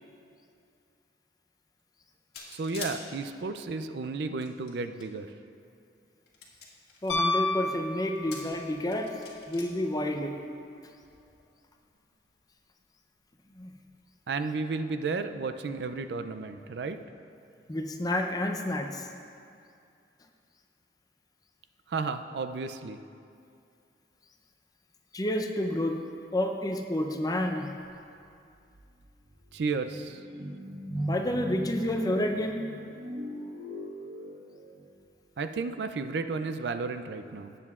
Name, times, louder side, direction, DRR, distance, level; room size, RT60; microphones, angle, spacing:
sound 1, 2.3-2.9 4.1-5.0 5.6-5.7 6.3-7.1 8.0-8.6 8.9-9.6, left 5 dB, 65° left, 1.7 m, -43 dB
voice 1, 2.5-5.3 14.3-17.0 21.9-23.0 29.5-30.2 35.4-37.6, right 4 dB, 65° right, 9 dB, 0.4 m, -33 dB
voice 2, 7.0-9.2 9.5-10.3 13.5-13.7 17.7-19.1 25.1-26.0 26.3-27.7 31.1-32.6, left 1 dB, 20° left, 3 dB, 0.6 m, -29 dB
Piano, 7.1-8.7 11.0-11.1, left 2 dB, 90° left, 1.0 m, -30 dB
sound 2, 28.3-28.4 28.7-34.9, right 1 dB, 45° right, 1.3 m, -39 dB
18.0 x 7.7 x 2.4 m, 2.5 s
head